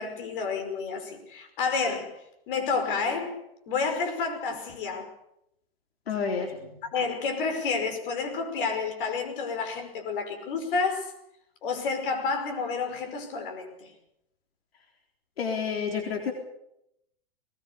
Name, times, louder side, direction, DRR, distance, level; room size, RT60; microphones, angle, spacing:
voice 1, 0.0-2.2 2.5-3.4 3.7-5.1 6.9-11.1 11.6-13.9, left 4 dB, 60° left, 6 dB, 5.5 m, -30 dB
voice 2, 6.1-6.8 15.4-16.3, left 6 dB, 90° left, 2 dB, 4.0 m, -30 dB
20.5 x 19.5 x 7.0 m, 0.80 s
hypercardioid pair, 140°, 30 cm